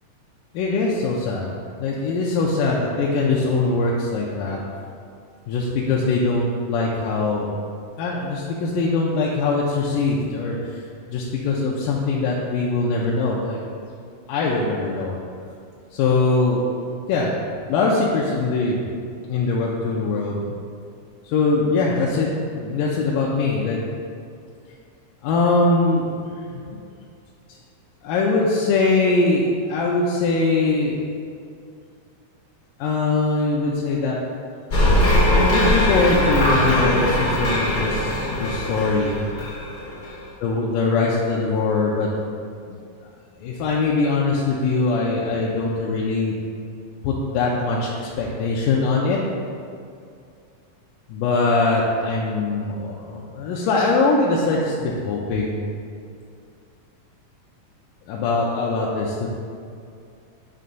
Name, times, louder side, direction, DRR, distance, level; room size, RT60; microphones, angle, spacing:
voice 1, 0.5-1.5 1.8-4.6 5.5-7.5 8.0-10.8 11.1-13.6 14.3-15.2 15.9-16.7 17.1-17.3 17.7-18.9 19.3-20.4 21.3-22.3 22.6-23.8 25.2-26.2 26.5-26.6 28.0-31.0 32.8-34.2 35.3-39.1 40.4-42.1 42.7-42.8 43.4-46.3 47.0-49.2 51.1-55.6 58.1-59.3, left 3 dB, 85° left, -4 dB, 2.3 m, -22 dB
sound 1, 34.7-40.1, left 1 dB, 65° left, 1.0 m, -20 dB
8.5 x 3.4 x 5.3 m, 2.4 s
omnidirectional pair, 3.8 m